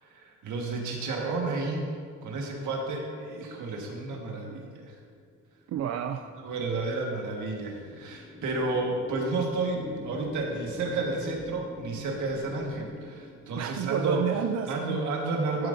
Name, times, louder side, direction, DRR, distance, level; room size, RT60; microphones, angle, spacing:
voice 1, 0.0-1.9 2.2-5.0 6.3-14.2 14.7-15.7, right 3 dB, 75° right, 0 dB, 1.6 m, -31 dB
sound 1, 5.3-14.1, left 1 dB, 10° left, 0.7 m, -45 dB
voice 2, 5.7-6.3 13.6-15.0, right 9 dB, 60° right, 7 dB, 0.4 m, -30 dB
11.5 x 7.7 x 2.7 m, 2.1 s
cardioid pair, 90°, 30 cm